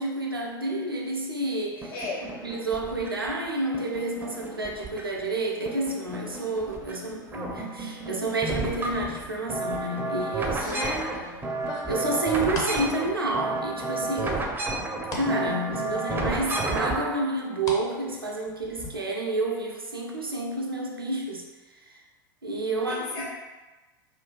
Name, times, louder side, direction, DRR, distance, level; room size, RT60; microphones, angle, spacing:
voice 1, 0.0-1.9 2.4-10.9 11.9-14.4 15.1-21.5 21.7-22.0 22.4-23.3, right 2 dB, 85° right, -1 dB, 0.4 m, -29 dB
sound 1, 1.8-3.3 3.7-5.3 5.7-7.0 7.2-17.2, right 2 dB, 15° right, 0.4 m, -32 dB
voice 2, 1.9-2.3 10.6-11.5 22.8-23.3, left 3 dB, 60° left, -5 dB, 1.0 m, -36 dB
sound 2, 9.5-9.9 10.5-12.8 13.2-13.8 14.2-15.3 15.7-15.8 16.7-17.8 18.1-18.9, left 2 dB, 30° left, 0.6 m, -37 dB
3.1 x 2.2 x 2.4 m, 1.2 s
figure-of-eight pair, 80°, 12 cm